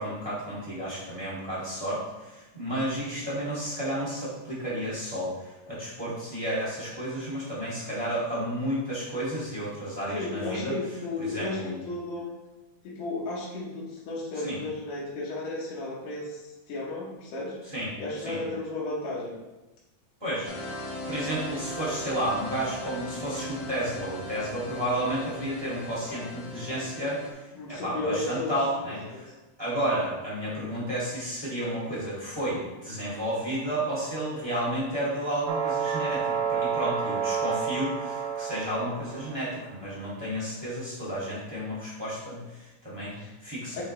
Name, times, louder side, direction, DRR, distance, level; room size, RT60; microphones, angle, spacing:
voice 1, 0.0-10.7 11.2-11.8 14.4-14.6 17.7-17.9 18.2-18.4 20.2-20.5 21.1-29.3 29.6-43.1 43.4-43.8, right 1 dB, 10° right, -9 dB, 1.3 m, -32 dB
voice 2, 10.1-12.4 12.8-17.6 18.0-19.4 27.5-28.5 28.9-29.3 43.1-43.3 43.8-43.9, left 2 dB, 80° left, -6 dB, 2.7 m, -34 dB
sound 1, 20.4-27.3, equal, 60° left, 1.9 m, -38 dB
sound 2, 35.5-39.5, right 6 dB, 80° right, 2.0 m, -30 dB
7.7 x 3.9 x 3.2 m, 1.1 s
omnidirectional pair, 3.7 m